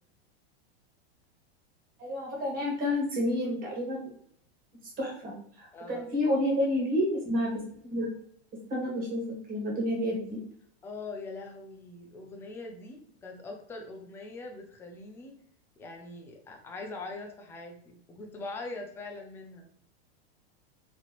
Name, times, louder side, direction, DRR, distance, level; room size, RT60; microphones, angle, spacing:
voice 1, 2.0-4.1 5.0-8.1 8.7-9.2 9.5-10.4, left 1 dB, 25° right, -2 dB, 1.5 m, -30 dB
voice 2, 5.7-6.1 10.8-15.4 15.8-19.7, left 3 dB, 10° left, 2 dB, 0.4 m, -42 dB
4.1 x 2.8 x 3.0 m, 0.63 s
supercardioid pair, 150°, 32 cm